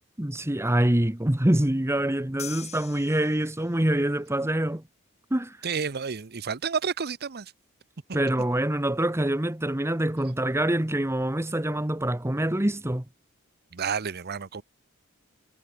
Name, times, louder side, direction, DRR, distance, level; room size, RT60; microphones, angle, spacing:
voice 1, 0.2-4.8 5.3-5.6 8.1-13.0, right 1 dB, 10° right, 1.1 m, -25 dB
sound 1, 2.4-4.0, left 8 dB, 30° left, 5.3 m, -42 dB
voice 2, 5.6-7.5 13.7-14.6, right 6 dB, 50° right, 0.8 m, -30 dB
head